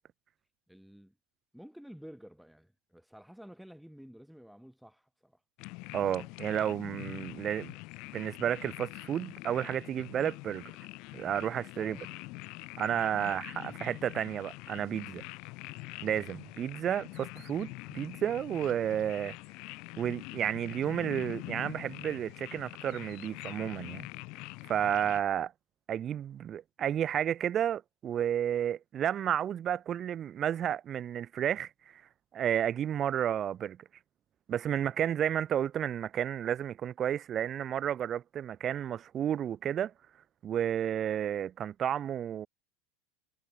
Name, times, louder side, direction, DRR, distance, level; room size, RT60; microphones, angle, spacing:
voice 1, 0.7-1.1 1.5-5.4 11.7-12.0 13.1-13.5, equal, ahead, 1.5 m, -52 dB
sound 1, 5.6-25.2, left 26 dB, 60° left, 2.3 m, -44 dB
voice 2, 5.9-7.7 8.1-10.7 11.1-12.0 12.8-15.2 16.0-19.3 20.0-24.1 24.6-25.5 25.9-32.0 32.3-33.8 34.5-39.9 40.4-42.5, right 10 dB, 35° right, 0.5 m, -32 dB
hypercardioid pair, 100°, 0 cm